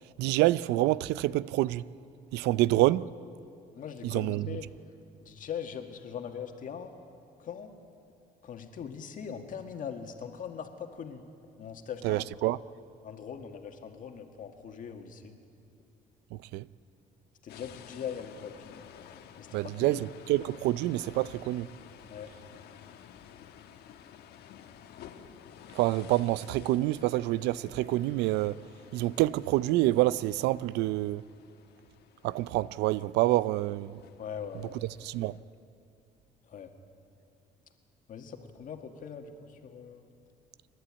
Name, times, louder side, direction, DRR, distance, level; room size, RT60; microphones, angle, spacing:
voice 1, 0.2-1.8 2.3-3.1 4.0-4.6 12.0-12.6 16.3-16.7 19.5-21.7 25.7-28.6 28.9-31.2 32.2-34.0 35.0-35.3, right 16 dB, 90° right, 0.5 m, -27 dB
voice 2, 3.7-4.7 5.2-7.0 7.4-7.7 8.4-11.3 11.6-12.3 13.0-15.4 17.4-18.9 19.4-20.0 22.1-22.3 34.2-34.8 36.4-36.7 38.1-40.1, left 7 dB, 50° left, 1.8 m, -41 dB
sound 1, 17.5-35.4, left 9 dB, 75° left, 1.3 m, -52 dB
28.5 x 11.5 x 8.8 m
cardioid pair, 110°, 17 cm